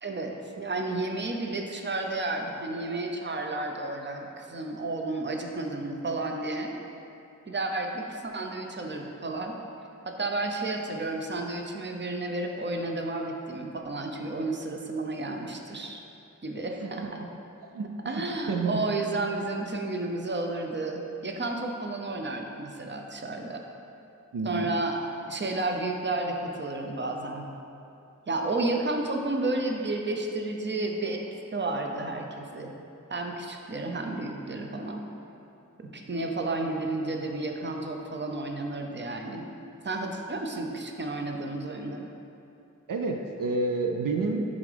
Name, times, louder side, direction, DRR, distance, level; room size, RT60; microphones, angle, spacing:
voice 1, 0.0-6.8 7.5-9.6 10.1-16.0 16.4-17.3 18.0-23.6 24.4-25.0 25.3-27.5 28.3-31.2 31.5-32.7 33.1-35.0 35.8-39.4 39.8-42.1, right 2 dB, 35° right, 2 dB, 0.6 m, -32 dB
voice 2, 18.5-18.8 24.3-24.7 42.9-44.4, right 3 dB, 85° right, 3 dB, 0.5 m, -28 dB
9.6 x 3.7 x 3.4 m, 2.8 s
wide cardioid pair, 45°, 32 cm